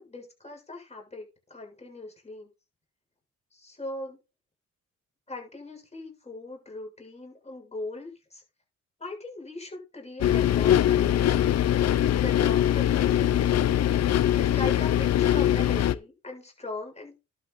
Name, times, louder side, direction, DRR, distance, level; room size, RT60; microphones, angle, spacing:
voice 1, 0.0-2.5 3.5-4.2 5.3-8.4 9.0-13.4 14.4-17.2, left 2 dB, 20° left, 1 dB, 7.6 m, -40 dB
sound 1, 10.2-16.0, left 11 dB, 60° left, 0.9 m, -22 dB
11.5 x 8.2 x 4.3 m, 0.29 s
cardioid pair, 90°, 30 cm